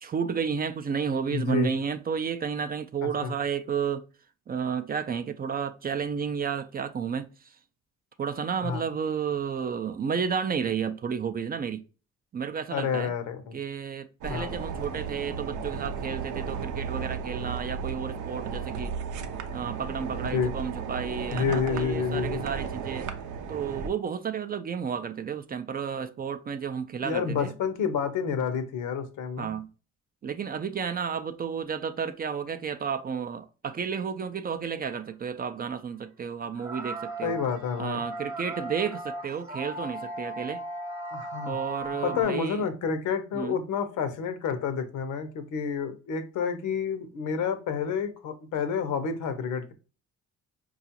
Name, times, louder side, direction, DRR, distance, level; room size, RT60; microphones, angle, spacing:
voice 1, 0.0-4.0 4.5-7.3 8.2-11.8 12.3-13.1 13.5-19.0 19.5-23.1 23.5-27.5 29.4-29.7 30.2-37.4 37.8-40.6 41.5-42.6 43.3-43.6, right 6 dB, 30° right, 0.4 m, -32 dB
voice 2, 1.3-1.7 3.0-3.3 8.6-8.8 12.7-13.5 14.3-14.5 20.3-20.5 21.3-22.4 27.0-29.5 37.2-38.0 41.1-41.6 42.0-49.7, left 6 dB, 80° left, 0.7 m, -29 dB
sound 1, 14.2-23.9, right 6 dB, 80° right, 0.6 m, -34 dB
sound 2, 34.8-35.0 35.7-35.8 36.5-42.2, right 1 dB, 10° right, 0.9 m, -37 dB
4.8 x 2.4 x 2.7 m
cardioid pair, 90°, 30 cm